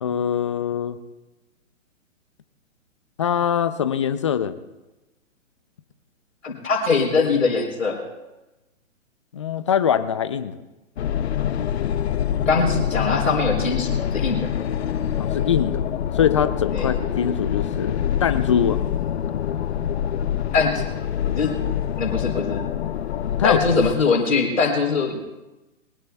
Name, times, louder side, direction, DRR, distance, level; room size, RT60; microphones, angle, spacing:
voice 1, 0.0-1.0 3.2-4.6 9.3-10.6 15.2-18.8 23.4-23.6, left 8 dB, 25° left, 13 dB, 0.4 m, -23 dB
voice 2, 6.4-8.0 12.5-14.5 16.7-16.9 20.5-20.8 21.3-21.5 22.0-22.6 23.4-25.2, left 4 dB, 80° left, 1 dB, 3.8 m, -22 dB
sound 1, 11.0-23.9, left 9 dB, 55° left, 0.7 m, -25 dB
22.0 x 20.0 x 2.3 m, 1.0 s
hypercardioid pair, 135°, 38 cm